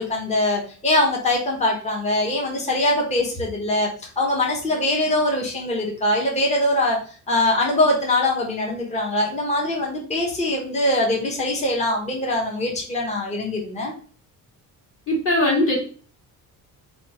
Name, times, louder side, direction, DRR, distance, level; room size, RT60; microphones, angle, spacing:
voice 1, 0.0-7.0 7.3-13.9, left 1 dB, 20° left, -1 dB, 0.8 m, -22 dB
voice 2, 15.1-15.7, left 1 dB, 40° left, -3 dB, 1.7 m, -19 dB
3.1 x 2.3 x 4.0 m, 0.41 s
cardioid pair, 115°, 35 cm